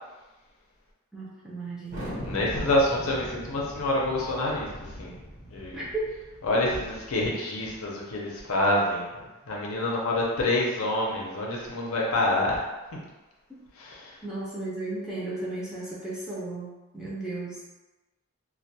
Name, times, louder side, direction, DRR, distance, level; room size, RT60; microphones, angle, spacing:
voice 1, 1.1-2.2 5.7-6.1 6.5-6.6 14.2-17.6, right 2 dB, 5° right, -8 dB, 0.4 m, -35 dB
Thunder, 1.9-7.1, equal, 40° right, 0.8 m, -41 dB
voice 2, 2.2-5.2 5.5-5.8 6.4-12.6 13.8-14.2, left 1 dB, 80° left, -3 dB, 0.6 m, -27 dB
2.2 x 2.2 x 2.7 m, 1.1 s
head